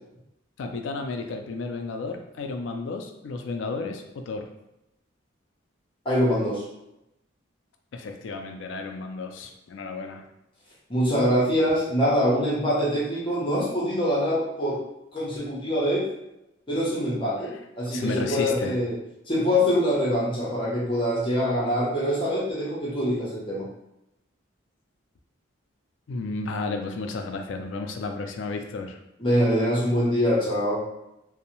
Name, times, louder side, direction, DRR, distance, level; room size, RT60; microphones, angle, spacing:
voice 1, 0.6-4.5 7.9-10.2 17.5-17.6 17.9-18.8 26.1-29.0, left 3 dB, 70° left, 4 dB, 0.3 m, -32 dB
voice 2, 6.0-6.6 10.9-14.8 15.1-16.1 16.7-18.9 19.3-23.6 29.2-30.8, equal, 25° left, -6 dB, 0.6 m, -24 dB
2.6 x 2.0 x 2.8 m, 0.88 s
head